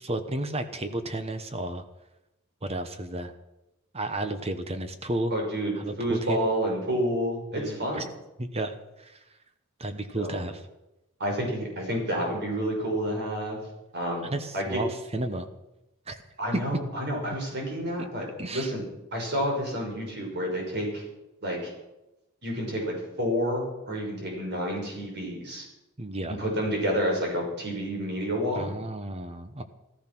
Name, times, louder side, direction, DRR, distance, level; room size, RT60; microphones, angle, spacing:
voice 1, 0.0-1.8 2.6-3.3 3.9-5.3 5.8-6.5 7.5-8.0 8.4-8.7 9.0-9.2 9.8-10.6 14.3-15.5 16.1-16.2 18.4-18.7 26.0-26.4 28.5-29.6, right 1 dB, 25° right, 9 dB, 1.0 m, -32 dB
voice 2, 5.3-8.0 10.2-10.4 11.2-13.6 13.9-14.8 16.4-18.3 18.5-18.8 19.1-21.0 21.4-21.7 22.4-25.7 26.3-28.7, equal, 50° right, 1 dB, 5.7 m, -29 dB
14.5 x 14.5 x 6.1 m, 0.96 s
head